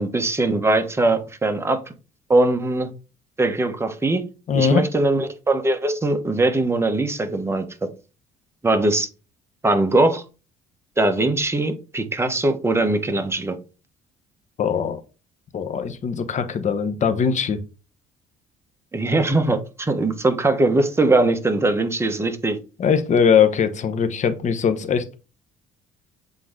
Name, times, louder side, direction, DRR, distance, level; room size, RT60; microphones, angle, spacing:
voice 1, 0.0-1.8 2.3-2.9 3.4-4.2 4.5-7.9 8.6-9.1 9.6-10.2 11.0-13.6 18.9-22.6, right 2 dB, 15° right, 6 dB, 1.2 m, -21 dB
voice 2, 4.5-4.8 14.6-15.0 15.5-17.6 22.8-25.2, left 7 dB, 45° left, 8 dB, 1.0 m, -21 dB
7.7 x 3.8 x 3.7 m, 0.32 s
cardioid pair, 110°, 17 cm